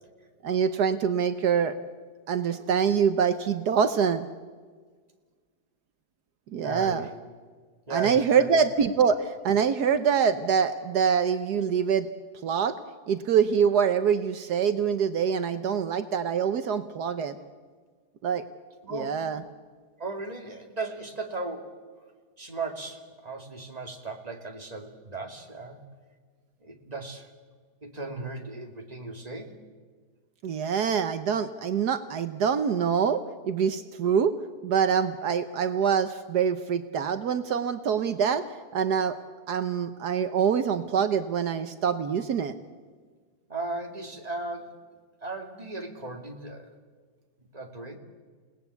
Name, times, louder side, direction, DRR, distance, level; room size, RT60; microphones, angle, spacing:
voice 1, 0.4-1.7 2.3-4.3 6.5-7.1 7.9-12.1 12.4-12.7 13.1-17.4 18.2-18.4 18.9-19.4 30.4-34.3 34.6-38.4 38.7-39.2 39.5-42.6, right 7 dB, 75° right, 9 dB, 1.5 m, -25 dB
voice 2, 6.6-7.1 7.9-8.6 18.8-19.3 20.0-21.8 22.4-25.8 26.6-27.3 27.8-29.6 43.5-44.8 45.2-46.7 47.4-48.0, right 3 dB, 25° right, 3 dB, 2.6 m, -36 dB
29.5 x 18.5 x 8.3 m, 1.5 s
omnidirectional pair, 1.8 m